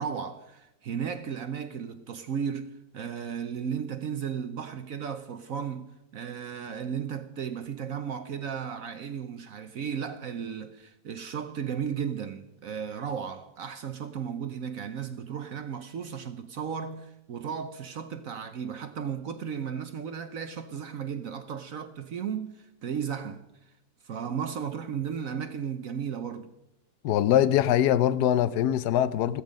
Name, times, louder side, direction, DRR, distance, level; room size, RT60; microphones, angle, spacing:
voice 1, 0.0-23.4 24.0-26.5, right 7 dB, 60° right, 1.0 m, -35 dB
voice 2, 27.0-29.4, left 11 dB, 65° left, 1.1 m, -23 dB
15.0 x 13.5 x 5.2 m
omnidirectional pair, 2.0 m